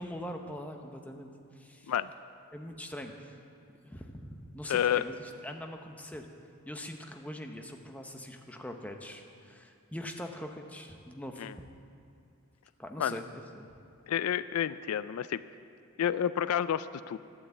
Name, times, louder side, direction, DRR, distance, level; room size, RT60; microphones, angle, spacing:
voice 1, 0.0-1.9 2.5-3.4 3.8-6.3 6.6-11.5 12.8-13.7, equal, 5° left, 3 dB, 0.8 m, -42 dB
voice 2, 4.7-5.0 11.4-11.5 13.0-13.2 14.1-15.4 16.0-17.2, left 9 dB, 75° left, 15 dB, 0.3 m, -29 dB
12.0 x 9.8 x 8.1 m, 2.5 s
head